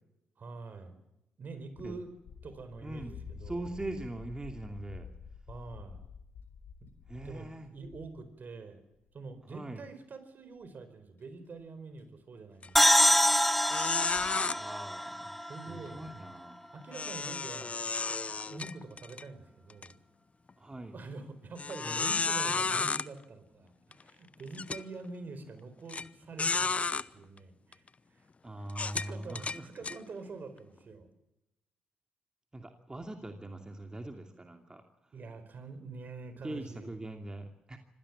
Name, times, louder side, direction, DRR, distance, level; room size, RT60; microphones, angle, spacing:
voice 1, 0.4-1.0 1.4-2.1 2.4-3.7 5.5-6.0 6.8-6.9 7.2-8.8 9.1-13.4 15.4-16.0 16.7-17.9 18.5-20.0 20.9-27.8 28.1-28.3 28.8-31.1 35.1-36.9, right 3 dB, 50° right, 10 dB, 4.7 m, -46 dB
sound 1, 1.7-8.3 8.9-9.4 9.7-9.8 10.6-10.7 11.6-11.7 12.0-12.1 12.7-12.9 13.2-13.3 13.4-13.5 13.9-14.3, left 6 dB, 70° left, 3.9 m, -49 dB
voice 2, 2.8-5.1 7.1-7.7 9.4-9.8 14.2-16.6 20.6-20.9 28.4-29.7 32.5-34.8 36.4-37.8, right 2 dB, 20° right, 4 dB, 2.6 m, -42 dB
sound 2, 12.6-12.9 13.3-13.4 13.7-14.6 16.9-19.2 19.7-19.9 20.5-20.6 21.6-23.1 23.9-24.0 24.5-24.8 25.9-26.0 26.4-27.1 27.7-27.9 28.7-30.0, left 4 dB, 35° left, 0.9 m, -32 dB
sound 3, 12.8-16.3, equal, 5° left, 0.7 m, -26 dB
25.5 x 17.0 x 7.5 m, 0.89 s
hypercardioid pair, 45°, 4 cm